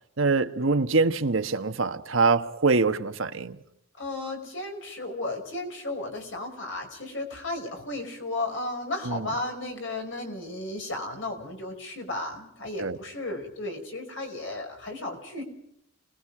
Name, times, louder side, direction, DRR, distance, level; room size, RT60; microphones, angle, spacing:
voice 1, 0.2-3.6 9.1-9.3 12.8-13.0, right 3 dB, 70° right, 1.2 m, -24 dB
voice 2, 4.0-15.4, left 2 dB, 65° left, 5.3 m, -34 dB
29.5 x 20.0 x 4.8 m
head